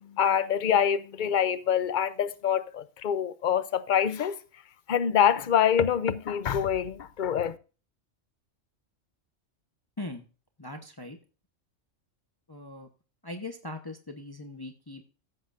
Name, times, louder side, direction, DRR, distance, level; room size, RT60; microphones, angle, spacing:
voice 1, 0.2-4.3 4.9-7.5, left 8 dB, 45° left, 0.8 m, -25 dB
voice 2, 10.6-11.2 12.5-12.9 13.2-15.1, left 2 dB, 20° left, 1.1 m, -40 dB
15.0 x 7.8 x 2.6 m
omnidirectional pair, 1.3 m